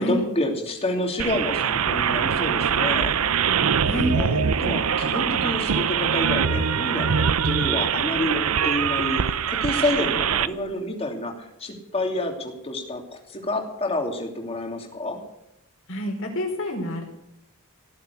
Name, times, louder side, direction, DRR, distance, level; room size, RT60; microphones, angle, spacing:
voice 1, 0.0-3.2 4.1-13.0 13.3-15.2, left 1 dB, 25° left, 2 dB, 2.9 m, -28 dB
sound 1, 1.2-10.5, right 7 dB, 80° right, 0.7 m, -23 dB
voice 2, 15.9-17.0, left 1 dB, 60° left, 1 dB, 5.0 m, -27 dB
17.5 x 7.5 x 9.5 m, 0.85 s
head